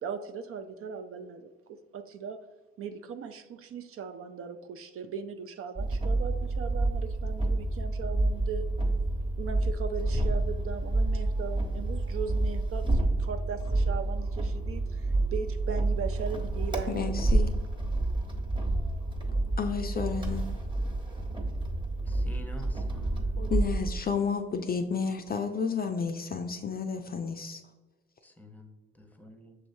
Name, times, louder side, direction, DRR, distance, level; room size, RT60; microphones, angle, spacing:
voice 1, 0.0-2.4 2.8-8.7 9.4-17.3, right 6 dB, 50° right, 7 dB, 0.4 m, -38 dB
sound 1, 5.8-24.0, right 2 dB, 15° right, 1.1 m, -29 dB
voice 2, 16.9-17.5 19.5-20.4 23.4-27.6, left 5 dB, 30° left, 5 dB, 0.4 m, -31 dB
voice 3, 22.1-23.5 28.2-29.6, left 1 dB, 5° left, 5 dB, 0.8 m, -48 dB
6.3 x 3.1 x 2.7 m, 1.2 s
hypercardioid pair, 55°, 30 cm